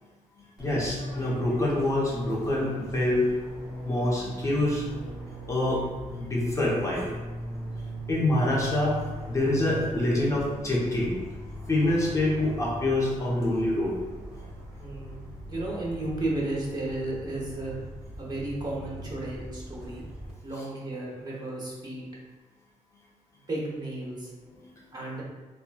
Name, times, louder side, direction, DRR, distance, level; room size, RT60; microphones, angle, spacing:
voice 1, 0.4-3.3 3.8-4.8 5.5-5.8 6.2-7.1 8.1-11.1 11.7-13.9 24.5-24.9, left 1 dB, 25° left, -5 dB, 0.8 m, -26 dB
Fixed-wing aircraft airplane, 0.6-20.3, equal, 5° right, 1.0 m, -39 dB
voice 2, 14.8-17.7 18.2-20.0 20.4-22.1 23.5-24.3 24.9-25.2, right 2 dB, 30° right, -5 dB, 0.9 m, -33 dB
2.9 x 2.3 x 2.3 m, 1.2 s
cardioid pair, 105°, 13 cm